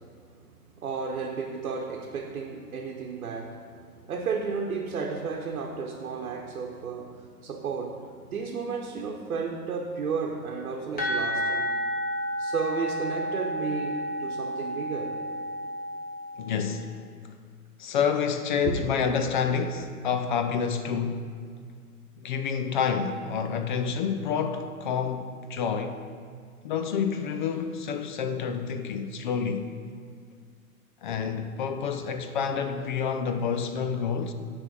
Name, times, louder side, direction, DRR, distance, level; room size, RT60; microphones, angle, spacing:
voice 1, 0.8-11.7 12.4-15.2 18.6-18.8, right 5 dB, 65° right, 1.0 m, -33 dB
sound 1, 11.0-16.6, equal, 20° left, 1.6 m, -31 dB
voice 2, 16.4-16.9 17.8-21.3 22.2-26.0 26.6-29.7 31.0-34.3, left 6 dB, 35° left, 0.4 m, -28 dB
9.7 x 3.5 x 6.8 m
figure-of-eight pair, 110°, 46 cm